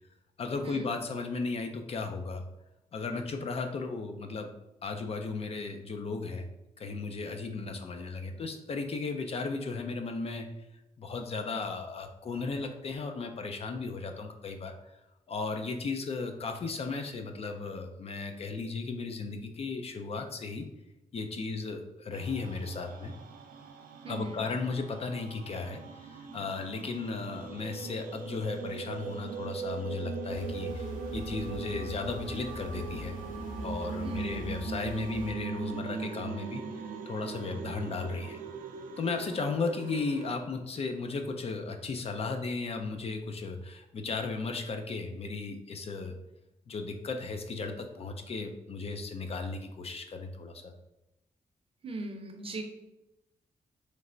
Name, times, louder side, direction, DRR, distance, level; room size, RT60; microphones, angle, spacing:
voice 1, 0.4-2.4 2.9-4.5 4.8-6.4 6.8-10.5 11.0-14.7 15.3-20.6 21.1-23.1 24.1-33.1 33.6-36.6 37.1-38.4 39.0-46.1 46.7-50.7, left 4 dB, 45° left, 5 dB, 0.4 m, -35 dB
sound 1, 22.1-40.4, right 5 dB, 85° right, 0.4 m, -40 dB
voice 2, 24.0-24.4 34.0-34.5 51.8-52.6, right 2 dB, 40° right, 3 dB, 0.6 m, -39 dB
sound 2, 30.3-35.3, left 2 dB, 75° left, 1.2 m, -42 dB
3.2 x 3.1 x 3.7 m, 0.92 s
wide cardioid pair, 145°, 14 cm